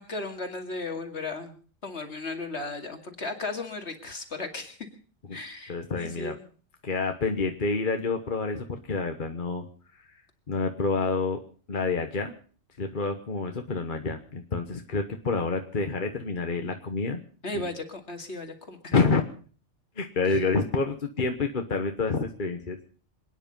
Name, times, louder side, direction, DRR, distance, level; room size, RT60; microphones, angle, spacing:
voice 1, 0.0-1.5 1.8-4.8 5.3-6.4 17.4-18.9 20.3-20.4, left 3 dB, 60° left, 5 dB, 2.6 m, -36 dB
voice 2, 5.7-6.4 6.8-9.6 10.5-11.4 11.7-12.3 12.8-17.2 18.9-19.2 20.0-22.9, left 4 dB, 45° left, 5 dB, 1.3 m, -28 dB
26.5 x 10.0 x 5.4 m, 0.41 s
omnidirectional pair, 1.3 m